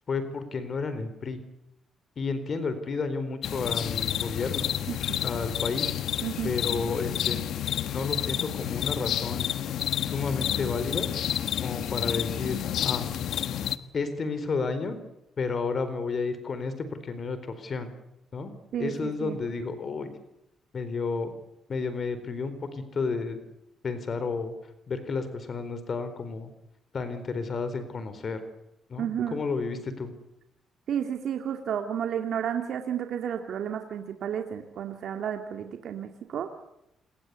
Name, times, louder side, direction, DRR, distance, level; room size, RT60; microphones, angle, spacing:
voice 1, 0.1-1.4 2.2-4.7 5.2-6.0 6.4-7.4 7.9-9.5 10.0-11.1 11.6-13.1 13.9-15.0 15.4-17.9 18.3-18.5 18.8-20.1 20.7-21.3 21.7-23.4 23.8-24.5 24.9-26.5 26.9-28.4 28.9-30.1, left 4 dB, 45° left, 11 dB, 4.2 m, -31 dB
sound 1, 3.4-13.8, left 10 dB, 75° left, 1.4 m, -30 dB
voice 2, 6.2-6.5 18.7-19.4 29.0-29.4 30.9-36.5, right 9 dB, 70° right, 5 dB, 2.4 m, -32 dB
27.5 x 22.0 x 8.3 m, 0.85 s
cardioid pair, 90°, 0 cm